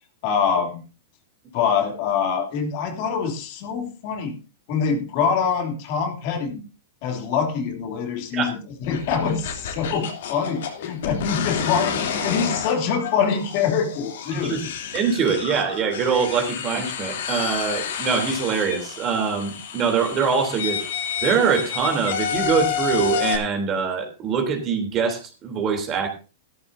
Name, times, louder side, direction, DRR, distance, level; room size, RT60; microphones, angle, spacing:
voice 1, 0.2-0.8 1.5-4.4 4.7-6.6 7.0-14.5, left 6 dB, 45° left, 4 dB, 2.8 m, -24 dB
sound 1, 8.8-23.4, left 8 dB, 70° left, 3.0 m, -30 dB
voice 2, 14.3-14.6 14.9-20.8 21.2-26.1, right 6 dB, 25° right, 4 dB, 3.2 m, -23 dB
14.5 x 13.5 x 2.7 m, 0.33 s
hypercardioid pair, 150°, 0 cm